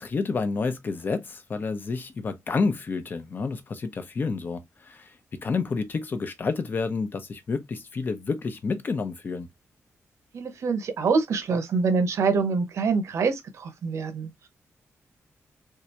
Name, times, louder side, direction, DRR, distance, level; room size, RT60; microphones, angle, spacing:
voice 1, 0.0-5.2 5.4-9.5, left 4 dB, 40° left, 0.7 m, -29 dB
voice 2, 10.3-14.5, right 4 dB, 70° right, 0.9 m, -25 dB
3.7 x 3.3 x 2.9 m
wide cardioid pair, 165°, 5 cm